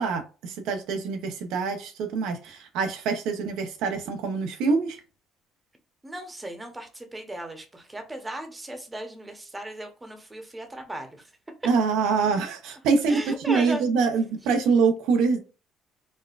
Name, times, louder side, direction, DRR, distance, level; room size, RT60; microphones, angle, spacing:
voice 1, 0.0-5.0 11.6-15.4, right 5 dB, 85° right, 0.7 m, -25 dB
voice 2, 6.0-11.3 13.1-13.9, right 1 dB, 15° right, 0.8 m, -36 dB
4.1 x 2.3 x 2.4 m
cardioid pair, 125°, 0 cm